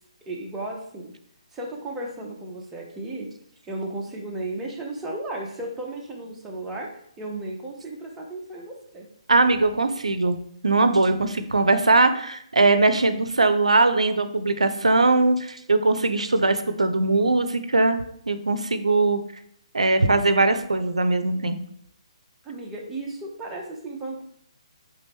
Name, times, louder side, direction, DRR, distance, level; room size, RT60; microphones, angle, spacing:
voice 1, 0.3-1.1 1.5-3.3 3.7-6.9 7.2-9.1 22.4-24.2, right 2 dB, 10° right, -2 dB, 0.6 m, -34 dB
voice 2, 9.3-10.4 10.6-19.2 19.7-21.6, right 3 dB, 90° right, 10 dB, 0.4 m, -20 dB
3.3 x 3.0 x 3.4 m, 0.67 s
figure-of-eight pair, 145°, 3 cm